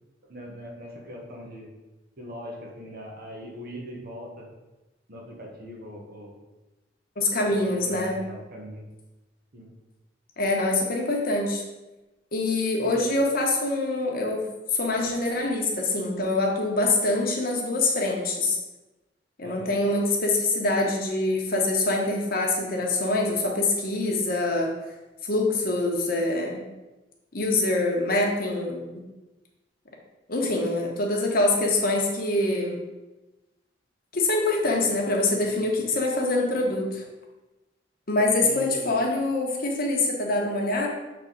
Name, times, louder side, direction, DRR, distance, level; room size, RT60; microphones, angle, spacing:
voice 1, 0.3-1.7 2.2-4.5 5.1-6.3 7.5-8.8 9.5-9.7 12.8-13.0 19.4-19.7 35.4-35.9 38.4-38.9, equal, 55° right, -1 dB, 1.3 m, -40 dB
voice 2, 7.2-8.2 10.4-11.6 12.3-14.4 14.7-18.6 19.4-24.7 25.2-26.6 27.3-28.9 30.3-32.8 34.1-37.0 38.1-40.9, left 2 dB, 55° left, 0 dB, 1.2 m, -25 dB
7.1 x 4.0 x 4.0 m, 1.1 s
head